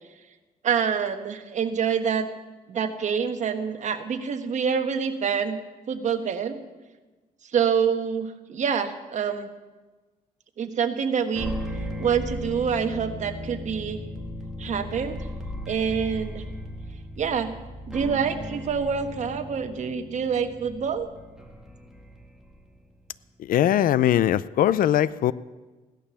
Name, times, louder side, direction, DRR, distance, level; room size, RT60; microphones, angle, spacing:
voice 1, 0.6-2.3 2.7-5.6 5.9-6.6 7.4-9.5 10.6-11.5 12.0-14.0 14.6-15.2 15.7-16.4 17.2-17.5 17.9-21.1, right 6 dB, 50° right, 8 dB, 1.4 m, -26 dB
sound 1, 11.3-22.7, equal, 5° right, 2.1 m, -37 dB
voice 2, 23.5-25.3, left 11 dB, 65° left, 18 dB, 0.5 m, -21 dB
16.5 x 11.5 x 7.0 m, 1.2 s
cardioid pair, 120°, 15 cm